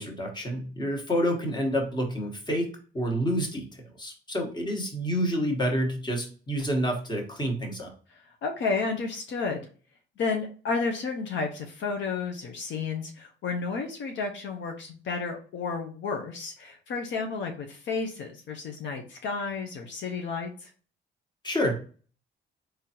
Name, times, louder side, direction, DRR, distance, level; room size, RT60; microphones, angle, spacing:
voice 1, 0.0-2.7 2.9-7.9 21.4-21.7, equal, 20° left, 2 dB, 1.2 m, -28 dB
voice 2, 8.4-9.7 10.2-20.7, left 4 dB, 70° left, 3 dB, 0.6 m, -32 dB
3.7 x 3.2 x 2.9 m, 0.40 s
cardioid pair, 90°, 20 cm